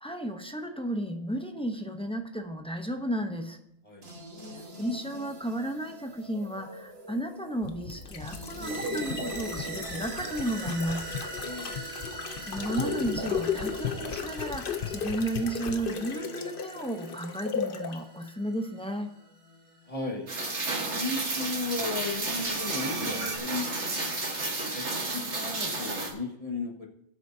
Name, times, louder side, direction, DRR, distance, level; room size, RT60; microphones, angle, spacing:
voice 1, 0.0-3.6 4.8-11.1 12.4-19.1, right 1 dB, 5° left, 4 dB, 0.8 m, -33 dB
sound 1, 4.0-20.1 22.0-23.4, right 2 dB, 65° right, 1.8 m, -40 dB
sound 2, 7.6-18.0 18.3-18.4, left 7 dB, 55° left, 1.0 m, -36 dB
voice 2, 11.4-11.7 19.9-20.3 20.9-23.7 24.0-24.1 24.7-26.9, left 3 dB, 30° left, 0 dB, 1.7 m, -35 dB
Rain, 20.3-26.1, right 2 dB, 80° right, 2.0 m, -32 dB
20.0 x 8.1 x 2.8 m, 0.75 s
omnidirectional pair, 1.1 m